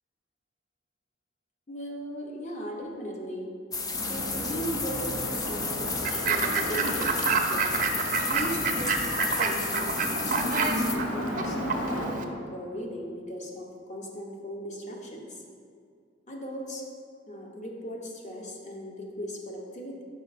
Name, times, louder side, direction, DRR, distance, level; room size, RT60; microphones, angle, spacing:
voice 1, 1.7-3.5 4.0-7.1 7.4-7.7 8.0-15.4 16.3-16.8 17.3-20.0, equal, 40° left, 0 dB, 0.9 m, -38 dB
sound 1, 3.7-11.0, left 4 dB, 20° left, 0.4 m, -33 dB
sound 2, 3.9-12.1, equal, 70° left, 1.0 m, -34 dB
Fowl / Bird, 6.0-12.2, right 5 dB, 45° right, 0.5 m, -29 dB
6.1 x 5.3 x 4.1 m, 2.2 s
head